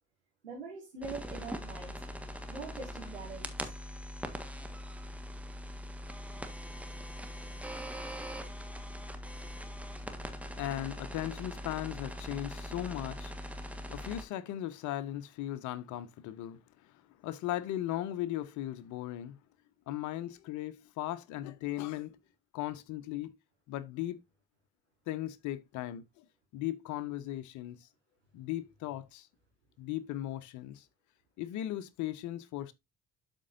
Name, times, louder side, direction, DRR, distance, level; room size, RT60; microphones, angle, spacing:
voice 1, 0.4-1.9 2.5-3.6, right 4 dB, 90° right, 1.7 m, -43 dB
sound 1, 1.0-14.3, equal, 5° right, 1.4 m, -42 dB
voice 2, 10.6-13.6 13.9-16.9 17.2-19.4 19.9-22.2 22.5-23.3 23.7-24.2 25.1-26.2 26.5-27.9 28.3-29.3 29.8-30.9 31.4-32.7, left 13 dB, 60° left, 0.9 m, -37 dB
12.5 x 4.5 x 2.6 m
figure-of-eight pair, 45°, 33 cm